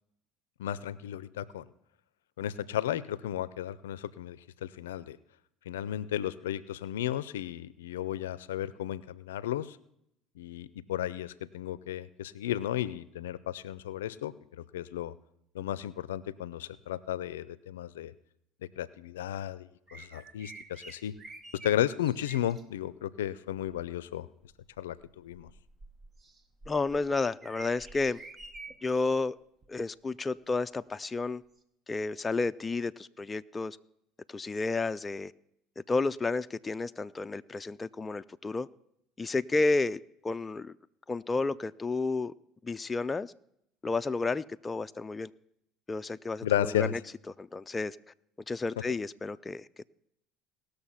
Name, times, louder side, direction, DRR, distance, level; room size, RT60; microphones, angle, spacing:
voice 1, 0.6-1.7 2.4-5.2 5.7-9.8 10.4-15.1 15.5-18.1 18.8-21.1 21.6-24.3 24.8-25.5 46.4-46.9, left 11 dB, 90° left, 0.4 m, -34 dB
sound 1, 19.9-22.6 23.5-23.8 24.4-29.1 29.6-29.8 31.6-31.7, right 3 dB, 30° right, 1.2 m, -49 dB
voice 2, 26.7-28.2 28.8-29.4 29.7-31.4 31.9-33.8 34.3-35.3 35.8-38.7 39.2-40.7 41.1-42.3 42.6-43.3 43.8-45.3 45.9-47.0 47.4-48.0 48.5-49.9, left 3 dB, 20° left, 0.4 m, -31 dB
18.5 x 6.7 x 5.7 m
hypercardioid pair, 80°, 0 cm